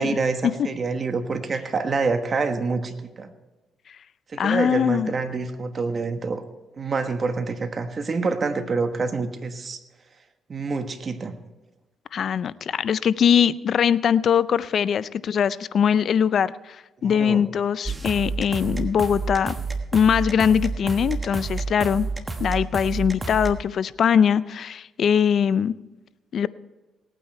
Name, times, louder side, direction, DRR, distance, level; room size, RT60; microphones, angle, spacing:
voice 1, 0.0-3.3 4.3-6.4 6.8-9.8 10.5-11.3 17.0-17.4, right 4 dB, 40° right, 8 dB, 1.3 m, -27 dB
voice 2, 4.4-5.1 12.1-19.5 19.9-22.1 22.4-25.7 26.3-26.5, left 8 dB, 60° left, 17 dB, 0.4 m, -21 dB
sound 1, 17.9-23.5, right 4 dB, 20° right, 1.3 m, -30 dB
18.5 x 9.1 x 4.4 m, 1.1 s
cardioid pair, 90°, 0 cm